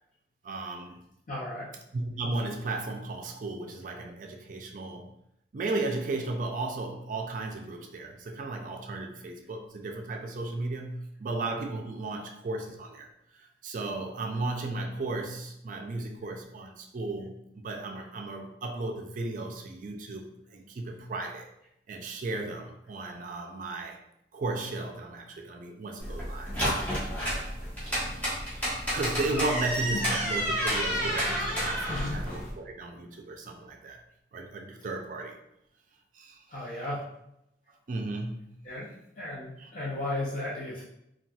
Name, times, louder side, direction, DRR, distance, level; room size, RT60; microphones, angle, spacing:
voice 1, 0.4-1.0 1.9-5.1 5.5-13.1 13.3-20.2 20.5-21.5 21.9-24.0 24.3-26.5 27.0-27.1 27.8-28.4 28.9-34.0 34.3-35.4 36.1-36.4 37.9-38.6 39.6-39.7, right 2 dB, 45° right, 2 dB, 0.4 m, -35 dB
voice 2, 1.3-1.7 29.9-30.0 31.9-32.2 36.5-37.0 38.6-38.9 39.2-40.8, left 2 dB, 45° left, -5 dB, 0.6 m, -34 dB
sound 1, 26.0-32.5, equal, 10° left, 1.0 m, -30 dB
4.0 x 2.3 x 2.3 m, 0.80 s
head